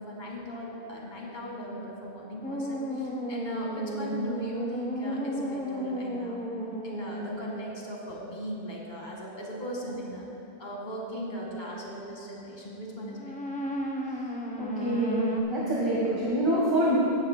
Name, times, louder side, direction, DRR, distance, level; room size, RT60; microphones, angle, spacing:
voice 1, 0.0-6.4 6.8-10.3 10.6-13.2, equal, 45° left, -3 dB, 2.0 m, -38 dB
sound 1, 2.4-7.9 13.1-15.4, equal, 10° left, 0.5 m, -33 dB
voice 2, 14.6-17.0, right 1 dB, 25° right, -7 dB, 1.4 m, -26 dB
16.5 x 11.0 x 2.2 m, 2.8 s
omnidirectional pair, 1.1 m